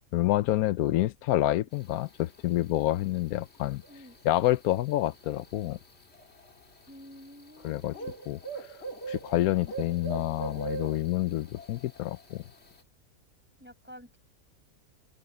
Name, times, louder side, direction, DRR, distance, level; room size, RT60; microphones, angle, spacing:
voice 1, 0.1-3.8 4.2-5.8 7.6-7.9 8.3-8.4 9.1-12.4, left 15 dB, 75° left, 1.0 m, -28 dB
sound 1, 1.7-12.8, right 4 dB, 45° left, 2.7 m, -43 dB
voice 2, 6.9-8.2 13.6-14.2, equal, 5° right, 7.0 m, -50 dB
open air
omnidirectional pair, 1.6 m